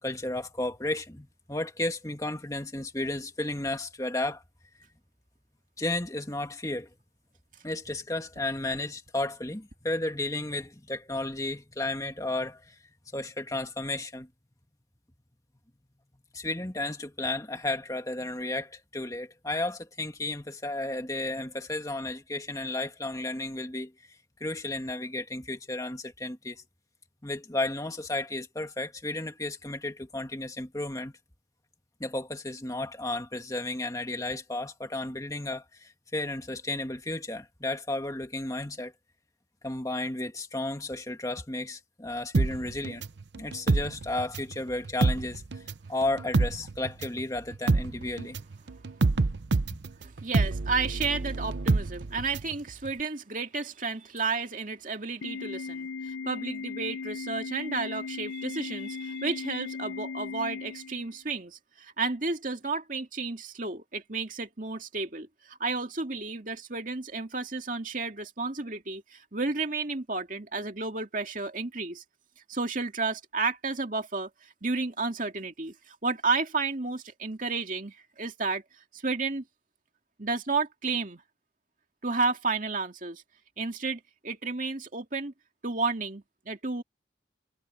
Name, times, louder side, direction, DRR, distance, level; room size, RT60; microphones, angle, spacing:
voice 1, 0.0-4.4 5.8-6.9 7.6-12.8 13.1-14.3 16.3-23.9 24.4-26.6 27.2-31.1 32.0-38.9 39.6-43.0 43.4-45.4 45.9-48.4, left 2 dB, 20° left, 2.0 m, -33 dB
sound 1, 42.3-44.6 44.9-52.6 52.9-53.0, right 3 dB, 75° right, 0.7 m, -27 dB
voice 2, 50.0-72.0 72.5-78.6 78.9-79.4 80.2-81.2 82.0-83.2 83.6-85.3 85.6-86.8, right 4 dB, 45° right, 2.4 m, -32 dB
Organ, 55.2-61.2, left 5 dB, 90° left, 0.7 m, -37 dB
head